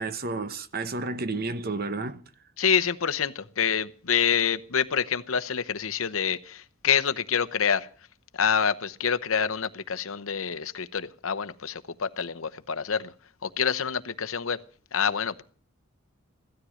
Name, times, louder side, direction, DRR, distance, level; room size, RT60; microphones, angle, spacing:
voice 1, 0.0-2.2, right 3 dB, 45° right, 1.0 m, -31 dB
voice 2, 2.6-7.9 8.3-13.1 13.4-14.6 14.9-15.4, left 7 dB, 80° left, 0.9 m, -27 dB
16.5 x 13.0 x 6.4 m
head